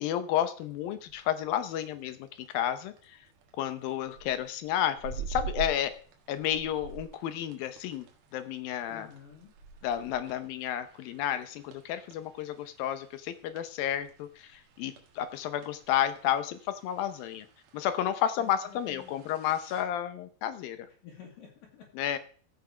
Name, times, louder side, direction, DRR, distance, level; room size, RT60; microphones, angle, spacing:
voice 1, 0.0-3.2 3.6-5.9 6.3-8.1 8.3-9.1 9.8-17.5 17.7-20.9 22.0-22.2, left 10 dB, 75° left, 11 dB, 2.3 m, -31 dB
sound 1, 0.6-19.8, right 7 dB, 70° right, 3.4 m, -47 dB
voice 2, 8.9-9.5 18.4-19.3 21.0-22.2, left 7 dB, 60° left, -1 dB, 3.5 m, -51 dB
15.5 x 5.9 x 4.9 m, 0.43 s
omnidirectional pair, 4.8 m